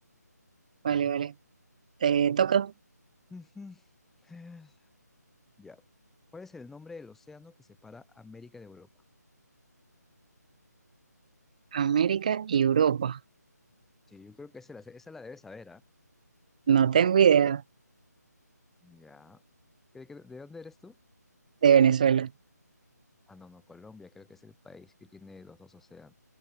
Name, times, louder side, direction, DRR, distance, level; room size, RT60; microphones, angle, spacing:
voice 1, 0.8-1.3 2.0-2.7 11.7-13.2 16.7-17.6 21.6-22.3, right 8 dB, 25° right, 0.4 m, -22 dB
voice 2, 3.3-3.9 4.2-4.9 5.6-5.8 6.3-8.9 14.1-15.8 18.8-19.4 19.9-21.0 23.3-26.1, left 4 dB, 5° left, 4.6 m, -48 dB
figure-of-eight pair, 155°, 9 cm